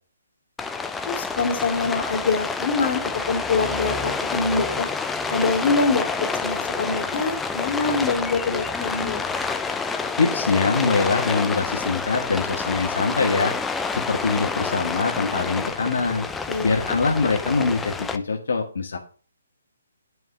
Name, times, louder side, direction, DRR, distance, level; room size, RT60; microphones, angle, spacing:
Rain, 0.6-18.2, left 4 dB, 5° left, 0.6 m, -28 dB
voice 1, 1.1-4.9 5.3-6.1 6.4-9.3 16.5-16.7, left 4 dB, 40° left, 2 dB, 2.8 m, -25 dB
voice 2, 10.2-13.5 13.9-16.3 16.6-19.0, left 4 dB, 75° left, 2 dB, 1.7 m, -23 dB
9.2 x 5.0 x 7.2 m, 0.40 s
hypercardioid pair, 155°, 0 cm